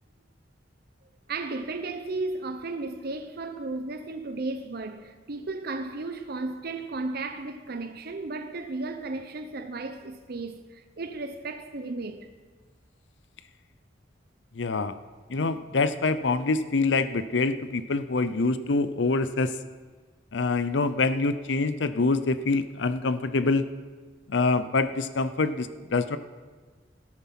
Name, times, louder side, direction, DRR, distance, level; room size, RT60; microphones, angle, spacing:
voice 1, 1.3-12.3, right 3 dB, 55° right, 0.7 m, -34 dB
voice 2, 14.5-15.0 15.3-19.6 20.3-23.7 24.3-26.2, left 3 dB, 70° left, 0.6 m, -25 dB
17.0 x 9.5 x 5.9 m
head